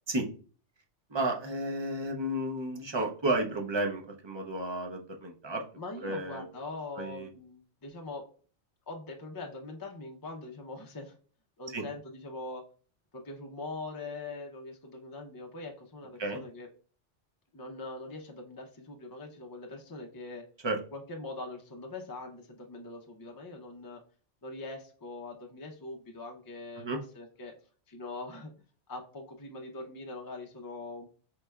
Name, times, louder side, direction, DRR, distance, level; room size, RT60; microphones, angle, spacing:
voice 1, 1.1-5.6 6.0-6.4 7.0-7.3 11.7-11.8 16.2-16.4 20.6-20.8 26.8-27.0, right 1 dB, 30° right, 2 dB, 0.5 m, -32 dB
voice 2, 5.8-8.3 8.9-11.1 11.6-12.6 13.1-16.7 17.5-20.4 20.9-24.0 24.4-27.5 27.9-28.5 28.9-31.1, left 2 dB, 30° left, 1 dB, 0.4 m, -42 dB
4.7 x 3.3 x 2.3 m, 0.41 s
omnidirectional pair, 1.2 m